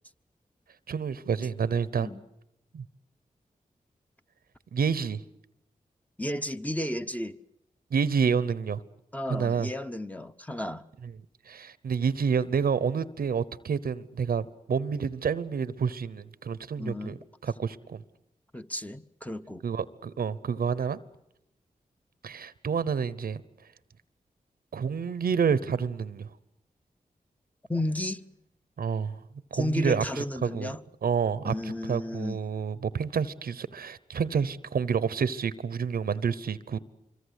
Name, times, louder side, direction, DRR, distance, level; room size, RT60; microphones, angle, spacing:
voice 1, 0.9-2.1 2.7-2.8 4.7-5.2 7.9-8.8 9.3-9.7 11.0-11.1 11.5-17.2 17.4-18.0 19.6-21.0 22.2-23.4 24.7-26.3 28.8-29.2 29.5-30.7 31.0-36.8, right 6 dB, 85° right, 0.9 m, -29 dB
voice 2, 6.2-7.4 9.1-10.8 16.8-17.2 18.5-19.6 27.7-28.2 29.5-30.8 31.4-32.4, left 1 dB, 10° left, 1.0 m, -33 dB
25.5 x 23.0 x 8.2 m
cardioid pair, 50°, 15 cm